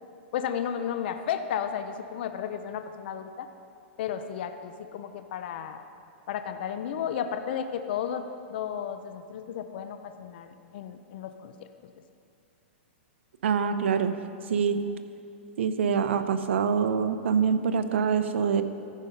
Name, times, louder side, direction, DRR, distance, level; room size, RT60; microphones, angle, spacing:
voice 1, 0.3-3.5 4.0-5.8 6.3-11.7, left 8 dB, 55° left, 8 dB, 0.6 m, -33 dB
voice 2, 13.4-14.1 14.5-14.8 15.6-18.6, right 6 dB, 75° right, 10 dB, 0.7 m, -25 dB
14.0 x 5.4 x 5.3 m, 2.5 s
hypercardioid pair, 150°, 6 cm